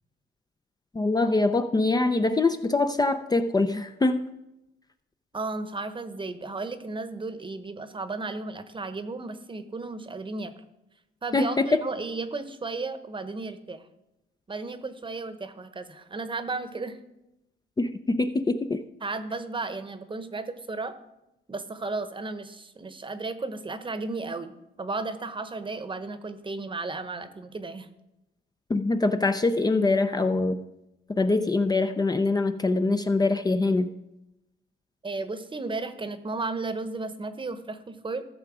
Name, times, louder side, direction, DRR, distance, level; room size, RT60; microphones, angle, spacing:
voice 1, 1.0-4.2 11.3-11.7 17.8-18.8 28.7-30.6 31.2-33.9, left 3 dB, 20° left, 8 dB, 0.5 m, -24 dB
voice 2, 5.3-10.5 11.2-13.8 14.5-17.0 19.0-20.9 21.5-27.9 35.0-38.3, right 3 dB, 25° right, 11 dB, 1.0 m, -34 dB
14.0 x 6.6 x 4.9 m, 0.92 s
cardioid pair, 90°, 20 cm